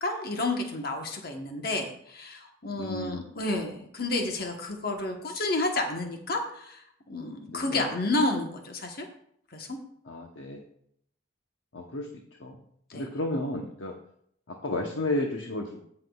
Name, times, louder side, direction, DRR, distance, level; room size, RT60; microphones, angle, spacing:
voice 1, 0.0-9.1 9.5-9.8 12.9-13.1, left 2 dB, 50° left, 3 dB, 1.1 m, -31 dB
voice 2, 2.8-3.2 7.5-7.9 10.1-10.6 11.7-12.1 12.4-12.6 12.9-13.9 14.5-15.8, left 1 dB, 70° left, 1 dB, 0.9 m, -32 dB
17.0 x 5.8 x 2.4 m, 0.68 s
head